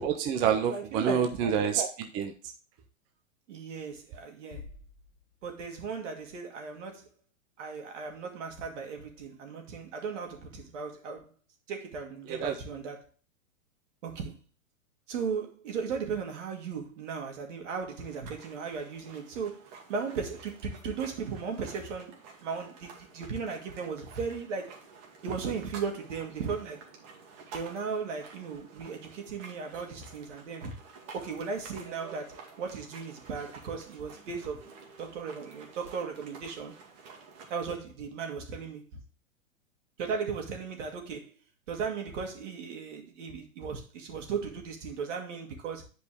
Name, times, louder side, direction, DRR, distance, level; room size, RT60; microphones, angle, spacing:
voice 1, 0.0-2.3 12.3-12.6, right 8 dB, 15° right, 0.3 m, -28 dB
voice 2, 0.7-1.4 3.5-4.7 5.4-7.1 7.6-11.3 11.7-13.1 14.0-14.4 15.1-24.8 25.2-26.8 27.5-30.8 31.1-34.7 35.0-36.7 37.5-38.8 40.0-41.3 41.7-45.9, right 5 dB, 60° right, 2.5 m, -36 dB
Bass drum, 4.5-5.9, left 5 dB, 90° left, 1.3 m, -49 dB
sound 1, 17.9-37.5, right 5 dB, 40° right, 2.2 m, -51 dB
9.8 x 5.2 x 3.4 m
hypercardioid pair, 120°, 41 cm